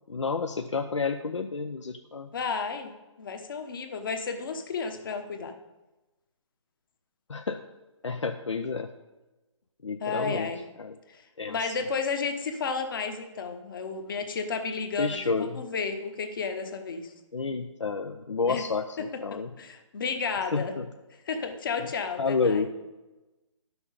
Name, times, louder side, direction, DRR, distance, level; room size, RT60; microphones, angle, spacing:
voice 1, 0.1-2.3 7.3-7.6 8.0-8.9 9.8-10.5 10.8-11.0 11.4-11.8 15.0-15.6 17.3-19.5 20.5-20.9 21.8-21.9 22.2-22.7, left 4 dB, 65° left, 6 dB, 0.6 m, -30 dB
voice 2, 2.3-2.9 3.2-5.5 10.0-10.6 11.1-17.1 18.5-18.6 19.0-19.1 19.3-20.7 21.3-22.6, left 5 dB, 40° left, 6 dB, 1.1 m, -32 dB
11.5 x 6.2 x 5.1 m, 1.1 s
figure-of-eight pair, 135°, 16 cm